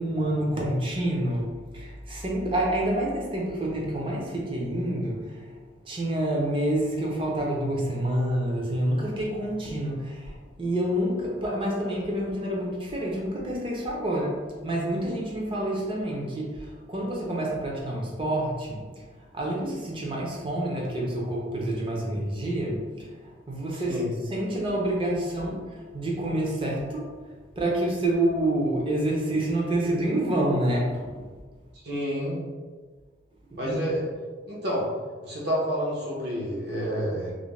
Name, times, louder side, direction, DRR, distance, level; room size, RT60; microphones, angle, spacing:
voice 1, 0.0-5.6 5.8-18.8 19.3-23.1 23.5-24.0 24.3-25.6 25.9-27.1 27.6-31.2 33.5-33.8, right 1 dB, 25° right, -3 dB, 0.5 m, -28 dB
voice 2, 31.8-32.4 33.6-34.0 34.5-34.8 35.2-37.3, equal, 60° right, -5 dB, 0.8 m, -29 dB
2.5 x 2.1 x 3.1 m, 1.4 s
head